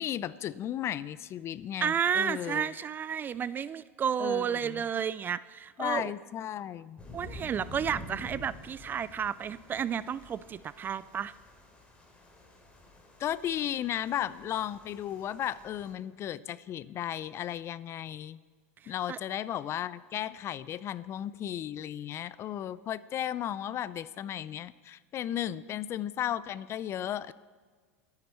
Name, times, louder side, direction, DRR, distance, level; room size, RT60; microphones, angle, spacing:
voice 1, 0.0-2.7 4.2-4.8 5.8-7.0 13.2-18.4 18.9-27.3, left 11 dB, 35° left, 18 dB, 0.5 m, -35 dB
voice 2, 1.8-6.1 7.1-11.3 19.1-19.2, right 8 dB, 25° right, 18 dB, 0.3 m, -31 dB
sound 1, 7.0-15.9, left 2 dB, 15° left, 3.3 m, -49 dB
24.0 x 9.7 x 4.4 m, 1.5 s
hypercardioid pair, 100°, 8 cm